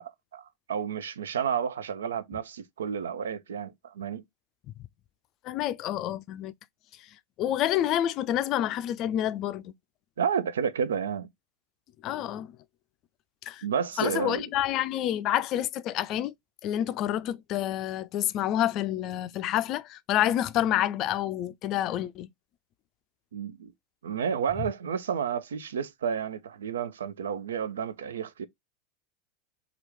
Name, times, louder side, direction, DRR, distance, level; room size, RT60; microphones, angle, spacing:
voice 1, 0.0-4.2 10.2-11.3 13.6-14.5 23.3-23.7 24.0-28.5, right 7 dB, 80° right, 0.3 m, -31 dB
voice 2, 5.4-6.5 7.4-9.7 12.0-12.5 13.5-13.6 14.0-16.3 16.6-22.3, left 12 dB, 50° left, 0.3 m, -28 dB
3.0 x 2.4 x 3.4 m
hypercardioid pair, 90°, 0 cm